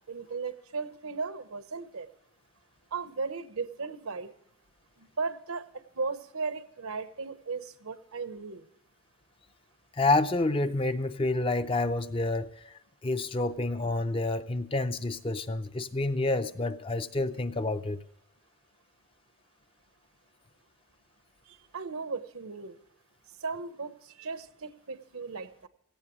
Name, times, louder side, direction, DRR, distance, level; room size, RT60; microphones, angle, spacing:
voice 1, 0.1-2.1 2.9-4.3 5.0-8.7 21.5-22.8 23.4-25.7, right 4 dB, 75° right, 0.9 m, -36 dB
voice 2, 10.0-12.7 13.0-18.0, left 2 dB, 25° left, 0.5 m, -28 dB
17.0 x 15.0 x 3.0 m
head